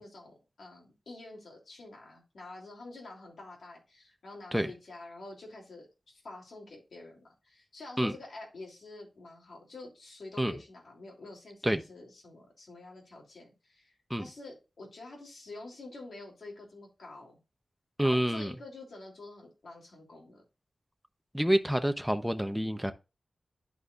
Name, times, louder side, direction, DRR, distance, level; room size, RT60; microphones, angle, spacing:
voice 1, 0.0-17.4 18.0-20.4, left 2 dB, 80° left, 2.9 m, -48 dB
voice 2, 18.0-18.5 21.3-22.9, equal, ahead, 0.8 m, -27 dB
11.0 x 4.8 x 2.5 m
wide cardioid pair, 90°, 0 cm